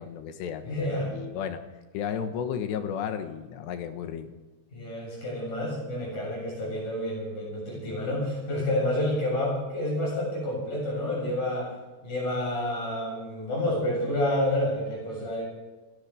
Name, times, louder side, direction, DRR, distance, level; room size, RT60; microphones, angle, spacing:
voice 1, 0.0-1.6 1.9-4.3, left 8 dB, 85° left, 7 dB, 3.5 m, -33 dB
voice 2, 0.6-1.1 4.7-11.7 12.0-15.4, left 1 dB, 50° left, -3 dB, 8.8 m, -29 dB
30.0 x 13.5 x 3.5 m, 1.2 s
omnidirectional pair, 4.9 m